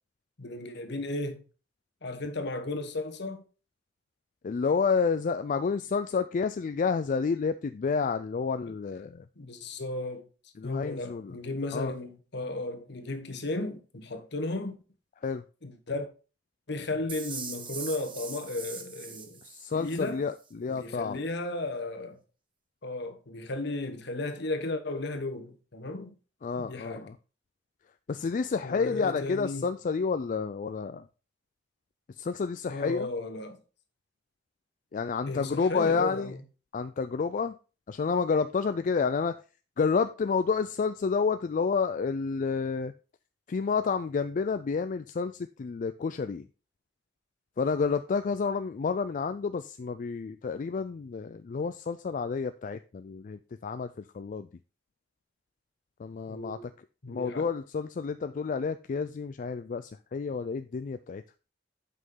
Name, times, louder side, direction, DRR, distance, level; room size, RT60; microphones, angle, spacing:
voice 1, 0.4-1.4 2.0-3.4 8.7-8.8 9.4-10.2 10.6-14.8 15.6-16.1 16.7-19.4 19.7-20.3 20.7-22.2 22.8-26.1 26.6-27.1 28.6-29.7 32.7-33.6 35.3-36.4 56.3-56.6 57.0-57.5, left 2 dB, 65° left, 1.2 m, -35 dB
voice 2, 4.4-9.2 10.6-11.3 11.7-11.9 15.2-15.4 19.4-21.2 26.4-27.2 28.1-31.0 32.2-33.1 34.9-36.3 36.7-37.6 37.9-39.4 39.8-42.9 43.5-46.5 47.6-54.5 56.0-56.7 57.1-61.2, left 5 dB, 45° left, 0.4 m, -30 dB
sound 1, 17.1-20.1, right 5 dB, 30° right, 1.1 m, -41 dB
8.2 x 5.6 x 3.8 m
head